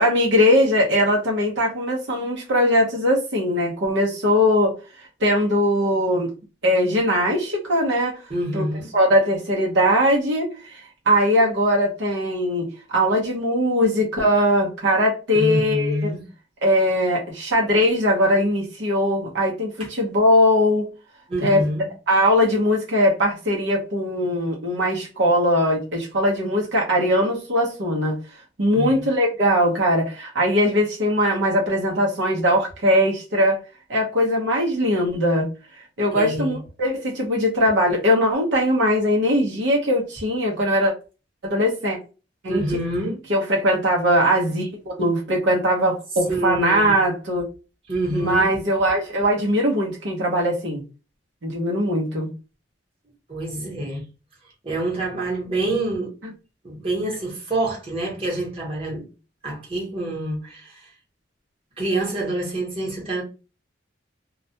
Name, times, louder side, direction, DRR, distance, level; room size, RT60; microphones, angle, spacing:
voice 1, 0.0-4.7 5.2-6.3 6.6-8.2 8.5-8.6 8.9-16.1 16.6-20.9 21.4-21.6 22.1-28.1 28.6-33.6 33.9-35.5 36.0-40.9 41.4-42.0 42.4-42.6 43.3-47.5 48.1-50.8 51.4-52.3 56.2-56.3, equal, 75° right, 0.7 m, -20 dB
voice 2, 8.3-8.9 15.3-16.2 21.3-21.9 28.7-29.1 36.1-36.6 42.5-43.2 46.3-47.0 47.9-48.5 53.3-54.0 54.6-56.1 56.6-59.1 59.4-60.8 61.8-63.2, right 1 dB, 30° right, 1.0 m, -26 dB
2.3 x 2.1 x 2.7 m
head